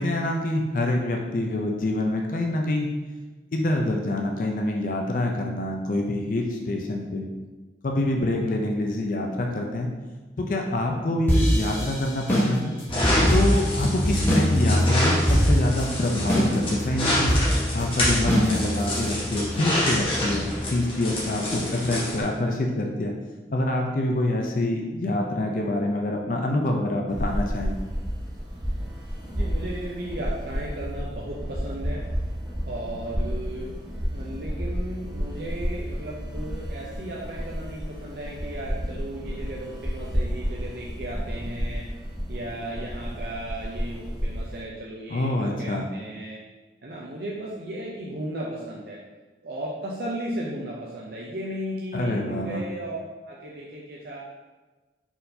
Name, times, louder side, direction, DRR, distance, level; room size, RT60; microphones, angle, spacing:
voice 1, 0.0-2.9 3.5-7.3 7.8-9.9 10.4-12.8 13.3-17.4 17.7-23.1 23.5-27.7 45.1-45.8 51.9-52.6, left 1 dB, 50° left, 1 dB, 0.4 m, -26 dB
sound 1, 11.3-14.5 14.8-14.9 15.3-15.8 16.3-16.8 17.3-19.1, equal, 10° left, 0.8 m, -22 dB
sound 2, 12.9-22.2, left 1 dB, 30° left, 1.1 m, -26 dB
sound 3, 27.1-44.6, equal, 25° right, 0.8 m, -31 dB
voice 2, 29.3-32.1 32.7-33.7 34.1-46.4 46.8-49.0 49.4-53.0 53.3-54.2, right 1 dB, 60° right, -4 dB, 0.5 m, -35 dB
4.4 x 3.9 x 2.6 m, 1.3 s
head